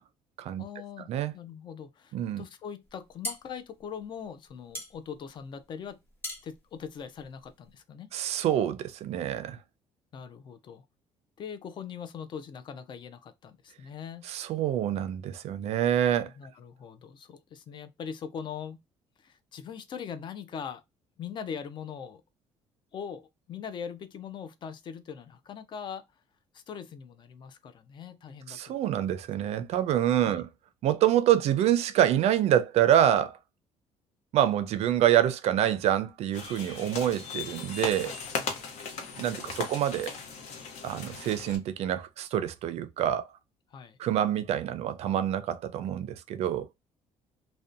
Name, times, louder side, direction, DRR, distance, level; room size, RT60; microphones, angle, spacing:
voice 1, 0.6-6.0 6.4-8.1 10.1-10.9 11.4-14.3 16.4-18.8 19.2-20.8 21.2-22.2 22.9-26.0 26.5-29.0 30.2-30.4 38.0-38.6 43.7-44.0, left 7 dB, 40° left, 0.4 m, -41 dB
voice 2, 2.1-2.4 8.1-9.6 14.3-16.3 28.5-30.5 30.8-33.4 34.3-38.1 39.2-40.1 40.8-43.3 44.0-46.7, right 11 dB, 60° right, 0.4 m, -26 dB
sound 1, 2.9-7.8, left 1 dB, 15° left, 1.1 m, -42 dB
sound 2, 36.3-41.6, left 5 dB, 65° left, 0.8 m, -37 dB
2.6 x 2.1 x 2.4 m
cardioid pair, 130°, 12 cm